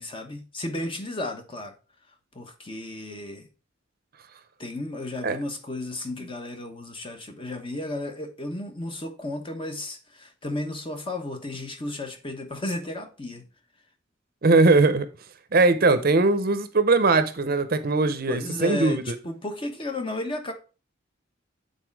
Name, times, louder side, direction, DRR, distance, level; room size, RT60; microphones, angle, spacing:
voice 1, 0.0-1.7 2.3-3.5 4.6-13.5 18.3-20.5, left 1 dB, 25° left, 1.0 m, -33 dB
voice 2, 14.4-15.1 15.5-19.0, right 3 dB, 50° right, 0.7 m, -20 dB
8.1 x 4.1 x 4.6 m
head